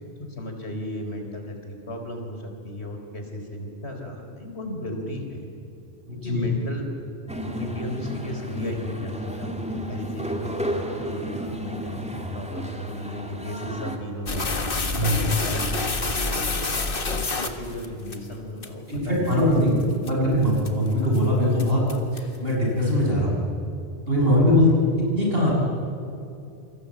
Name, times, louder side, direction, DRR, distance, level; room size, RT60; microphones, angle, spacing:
voice 1, 0.3-5.5 6.1-6.9 7.4-9.5 9.9-14.5 15.0-15.7 16.0-19.5 19.8-20.3 24.6-24.8, left 1 dB, 80° left, 4 dB, 4.5 m, -35 dB
voice 2, 6.1-6.5 14.9-15.2 18.9-21.8 22.1-23.4 24.1-24.7 25.0-25.5, left 1 dB, 60° right, -2 dB, 7.6 m, -21 dB
sound 1, 7.3-14.0, equal, 5° right, 2.2 m, -32 dB
sound 2, 14.3-18.2 18.6-18.7 19.3-19.4 19.8-20.1 20.6-20.9 21.1-21.2 21.6-22.4, left 3 dB, 55° left, 1.9 m, -27 dB
28.0 x 24.5 x 8.7 m, 2.6 s
omnidirectional pair, 1.1 m